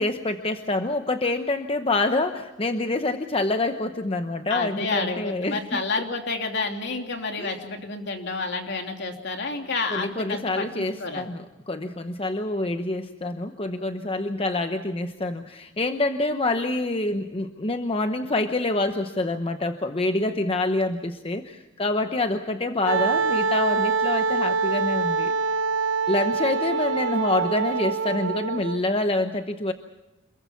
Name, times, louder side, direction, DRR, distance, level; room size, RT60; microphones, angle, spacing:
voice 1, 0.0-5.8 7.4-7.6 9.9-25.3 26.1-29.7, left 2 dB, 30° left, 7 dB, 0.9 m, -26 dB
voice 2, 4.5-11.2, left 3 dB, 60° left, 3 dB, 3.1 m, -29 dB
Wind instrument woodwind instrument, 22.9-28.8, right 5 dB, 70° right, 0.9 m, -25 dB
27.0 x 22.0 x 5.9 m, 1.1 s
head